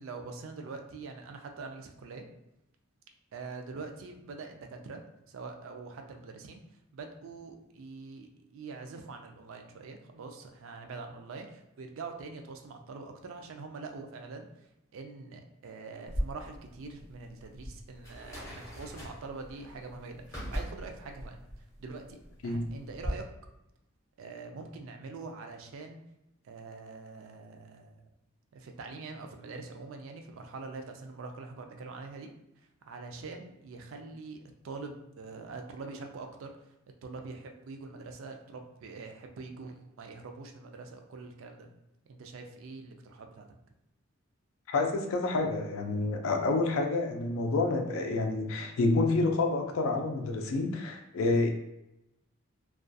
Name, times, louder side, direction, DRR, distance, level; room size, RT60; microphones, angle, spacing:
voice 1, 0.0-2.2 3.3-6.6 6.9-14.5 14.9-21.4 21.8-23.2 24.2-26.0 26.4-28.0 28.5-32.3 32.8-36.5 37.0-41.7 42.1-43.5, right 4 dB, 70° right, 4 dB, 0.3 m, -44 dB
sound 1, 16.1-23.1, equal, 15° left, 0.6 m, -40 dB
voice 2, 44.7-51.5, left 3 dB, 70° left, 4 dB, 0.4 m, -28 dB
2.3 x 2.2 x 2.5 m, 0.86 s
head